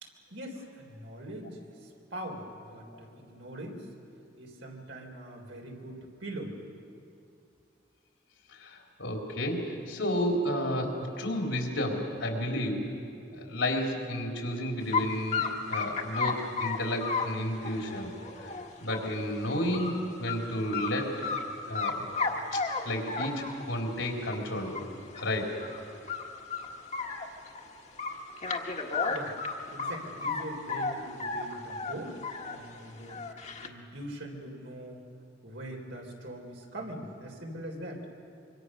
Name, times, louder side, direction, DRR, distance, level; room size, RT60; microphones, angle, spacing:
voice 1, 0.0-3.9 4.4-6.6 29.1-29.4 29.7-33.2 33.6-35.0 35.4-38.1, right 1 dB, 75° right, 1 dB, 3.9 m, -42 dB
voice 2, 8.5-12.9 13.3-18.5 18.8-21.1 21.7-22.1 22.5-25.5, left 1 dB, 85° left, 0 dB, 4.1 m, -32 dB
sound 1, 14.9-15.0 15.3-19.1 19.5-19.9 20.3-20.4 20.7-21.4 21.7-23.7 24.3-24.4 24.7-24.8 25.1-25.2 25.6-25.8 26.1-27.6 28.0-30.4 30.7-32.6 33.0-33.7, left 4 dB, 40° left, 1.5 m, -33 dB
25.5 x 24.5 x 6.6 m, 2.5 s
head